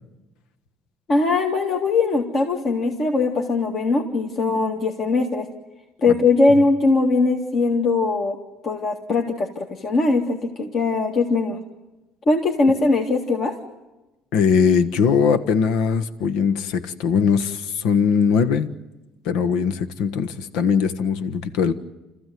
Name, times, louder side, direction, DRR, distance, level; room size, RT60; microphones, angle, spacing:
voice 1, 1.1-5.5 6.0-8.4 8.6-11.6 12.3-13.5, left 3 dB, 40° left, 1 dB, 2.2 m, -20 dB
voice 2, 14.3-18.7 19.2-21.7, left 6 dB, 85° left, 11 dB, 1.4 m, -20 dB
29.5 x 15.0 x 9.4 m, 1.0 s
cardioid pair, 160°, 0 cm